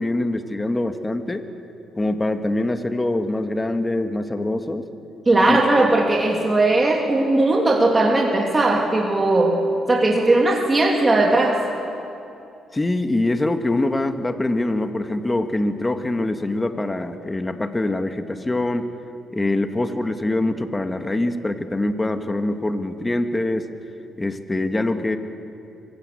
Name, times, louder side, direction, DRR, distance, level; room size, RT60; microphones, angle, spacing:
voice 1, 0.0-1.5 2.0-4.8 5.5-5.6 12.7-18.9 19.3-23.7 24.2-25.2, left 2 dB, 15° left, 8 dB, 1.5 m, -24 dB
voice 2, 5.3-9.6 9.9-11.6, right 2 dB, 25° right, -1 dB, 2.6 m, -18 dB
24.0 x 15.5 x 8.5 m, 2.7 s
cardioid pair, 90°, 0 cm